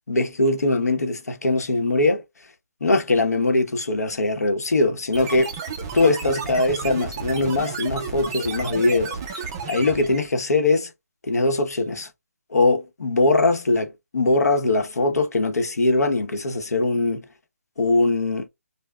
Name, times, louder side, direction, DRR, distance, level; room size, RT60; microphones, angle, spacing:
voice 1, 0.1-2.2 2.8-5.5 5.9-9.2 9.7-10.9 11.3-12.1 12.5-17.2 17.8-18.5, left 2 dB, 85° left, 0.9 m, -21 dB
sound 1, 5.1-10.3, right 5 dB, 15° right, 0.4 m, -32 dB
5.3 x 2.2 x 2.3 m
hypercardioid pair, 170°, 8 cm